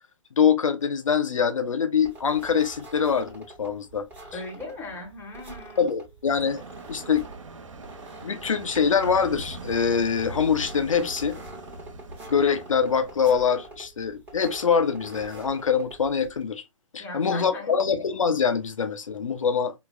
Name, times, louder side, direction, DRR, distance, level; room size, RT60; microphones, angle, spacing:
voice 1, 0.4-4.1 5.8-6.6 6.9-7.3 8.2-11.4 12.3-16.6 16.9-19.7, left 6 dB, 85° left, 0.7 m, -24 dB
sound 1, 2.0-16.4, right 2 dB, 10° right, 1.4 m, -45 dB
voice 2, 4.3-5.9 17.0-17.8, left 2 dB, 10° left, 1.3 m, -38 dB
sound 2, 6.4-13.4, right 2 dB, 80° right, 0.9 m, -42 dB
5.0 x 2.4 x 2.3 m
hypercardioid pair, 140°, 16 cm